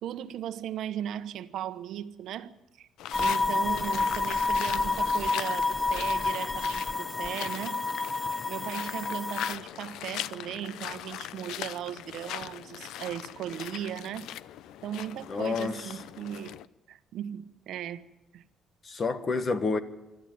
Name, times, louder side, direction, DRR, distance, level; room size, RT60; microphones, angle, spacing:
voice 1, 0.0-2.9 3.2-7.8 8.5-14.3 14.8-16.6 16.9-18.0 18.3-18.4, right 10 dB, 65° right, 1.1 m, -37 dB
sound 1, 3.0-16.6, left 12 dB, 80° left, 0.7 m, -40 dB
sound 2, 3.1-9.5, left 3 dB, 10° left, 0.7 m, -29 dB
voice 2, 15.3-15.9 18.8-19.8, left 4 dB, 30° left, 1.4 m, -29 dB
26.0 x 13.0 x 9.5 m
cardioid pair, 150°, 0 cm